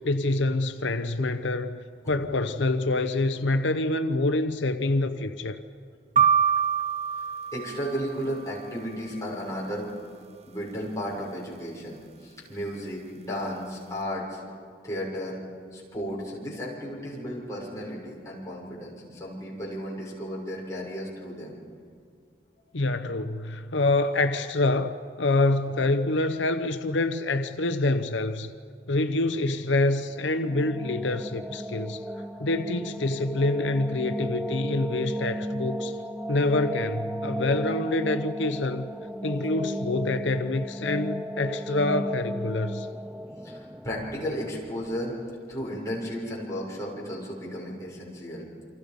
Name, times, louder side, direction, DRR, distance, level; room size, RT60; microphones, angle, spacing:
voice 1, 0.1-1.8 2.1-5.6 22.7-28.5 28.9-32.0 32.4-36.0 36.3-38.9 39.2-42.9, left 2 dB, 85° left, 0.9 m, -26 dB
sound 1, 6.2-8.3, right 7 dB, 35° right, 0.8 m, -24 dB
voice 2, 7.5-9.9 10.4-14.4 14.8-15.4 15.7-21.6 32.2-32.4 43.4-45.1 45.5-48.5, equal, 15° left, 6.5 m, -34 dB
sound 2, 30.2-45.1, equal, 5° right, 0.5 m, -35 dB
29.0 x 25.5 x 5.4 m
head